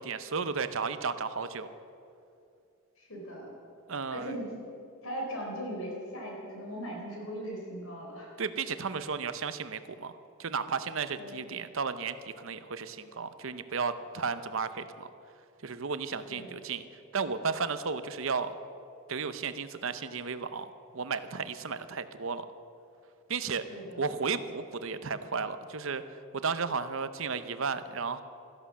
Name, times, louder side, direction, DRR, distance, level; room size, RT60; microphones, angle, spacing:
voice 1, 0.0-1.7 3.9-4.3 8.4-15.1 15.6-16.8 17.1-18.5 19.1-22.5 23.3-23.6 24.0-26.0 26.3-28.2, right 5 dB, 60° right, 12 dB, 0.7 m, -34 dB
voice 2, 3.0-3.5 4.1-4.5 5.0-8.3 11.2-11.5 16.3-16.6 23.7-24.1, equal, 70° left, -1 dB, 4.1 m, -39 dB
13.5 x 11.0 x 7.4 m, 2.6 s
head